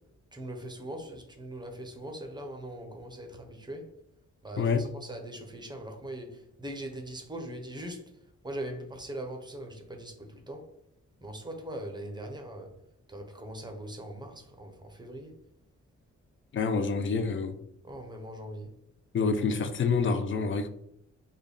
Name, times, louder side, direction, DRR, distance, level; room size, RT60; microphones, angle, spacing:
voice 1, 0.3-3.8 4.4-8.0 8.4-10.7 11.2-12.7 13.1-15.3 17.8-18.7, right 1 dB, 15° right, 4 dB, 0.5 m, -41 dB
voice 2, 16.5-17.5 19.1-20.7, left 5 dB, 40° left, 9 dB, 0.4 m, -27 dB
3.4 x 2.1 x 3.7 m, 0.75 s
wide cardioid pair, 130°, 30 cm